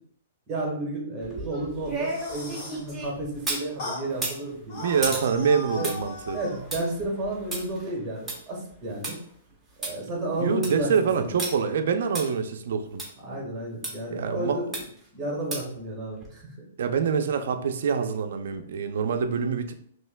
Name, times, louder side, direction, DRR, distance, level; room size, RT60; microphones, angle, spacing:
voice 1, 0.5-5.1 5.7-5.9 6.3-9.2 9.8-11.4 13.2-14.8 15.1-16.6, right 1 dB, 25° right, -2 dB, 1.5 m, -32 dB
sound 1, 1.2-3.7 4.1-9.1 9.5-9.6 9.8-9.9 10.4-10.8 11.4-11.5 12.2-12.3 13.0-13.1 13.8-13.9 14.7-15.1 15.5-15.8 16.2-16.3, right 2 dB, 5° right, 1.1 m, -34 dB
sound 2, 1.9-2.9 3.8-4.1 4.7-6.6, left 2 dB, 40° left, 1.4 m, -37 dB
voice 2, 4.8-6.4 10.4-13.0 14.1-14.6 16.8-19.7, right 6 dB, 70° right, 7 dB, 0.5 m, -25 dB
5.5 x 3.1 x 2.2 m, 0.63 s
hypercardioid pair, 150°, 0 cm